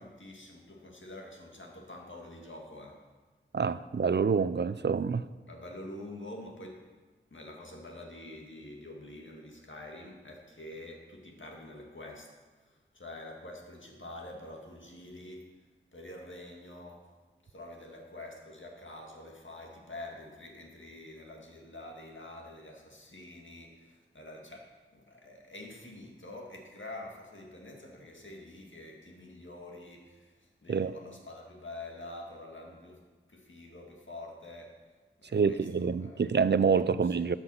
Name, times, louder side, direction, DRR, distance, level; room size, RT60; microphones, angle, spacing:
voice 1, 0.0-3.0 5.5-6.9 7.3-12.3 12.6-15.7 15.9-17.1 17.4-34.8 35.2-36.2 36.9-37.2, left 1 dB, 65° left, 0 dB, 2.0 m, -47 dB
voice 2, 3.5-5.2 30.7-30.9 35.3-37.4, right 5 dB, 55° right, 15 dB, 0.4 m, -27 dB
13.5 x 6.1 x 5.6 m, 1.3 s
wide cardioid pair, 40°, 21 cm